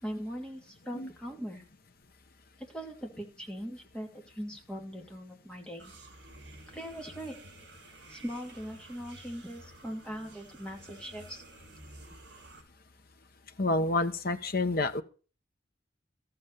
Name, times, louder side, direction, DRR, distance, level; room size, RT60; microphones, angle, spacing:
voice 1, 0.0-1.6 2.7-5.9 6.7-7.4 8.1-11.4, equal, 5° left, 0 dB, 2.8 m, -40 dB
sound 1, 5.8-12.6, right 2 dB, 60° right, 4.4 m, -52 dB
voice 2, 13.6-15.0, left 2 dB, 55° left, 8 dB, 1.1 m, -28 dB
14.0 x 7.8 x 6.9 m, 0.37 s
head